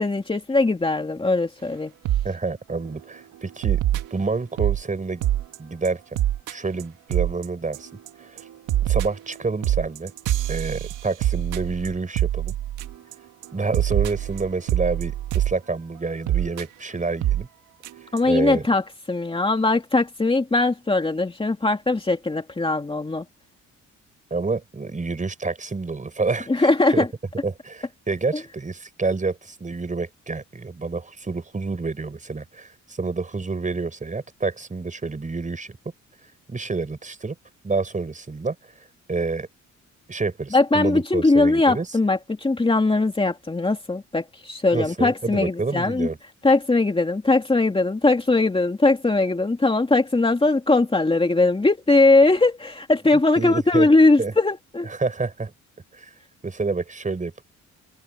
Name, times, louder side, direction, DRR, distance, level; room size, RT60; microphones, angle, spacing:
voice 1, 0.0-1.9 18.1-18.8 19.1-23.2 26.5-27.1 28.3-28.4 40.5-46.1 46.4-54.9, left 2 dB, 15° left, 2.5 m, -20 dB
sound 1, 2.0-2.3 2.7-2.9 3.6-4.8 5.2-5.6 5.8-5.9 6.1-6.5 6.8-6.9 7.1-7.4 7.7-8.1 8.4-13.1 13.4-13.5 13.7-15.5 16.3-16.6 17.2-17.4 17.8-17.9 18.2-18.3, right 13 dB, 85° right, 1.6 m, -24 dB
voice 2, 2.2-3.8 4.1-5.2 5.6-6.2 6.5-7.9 8.2-8.4 8.8-10.1 10.5-12.5 13.5-17.5 18.2-18.6 24.3-27.0 27.4-35.7 36.5-37.3 37.6-38.6 39.1-39.5 40.1-41.9 44.7-46.2 53.4-53.9 54.2-54.3 54.9-55.5 55.9-56.1 56.4-57.4, right 3 dB, 25° right, 6.5 m, -28 dB
cardioid pair, 90°, 30 cm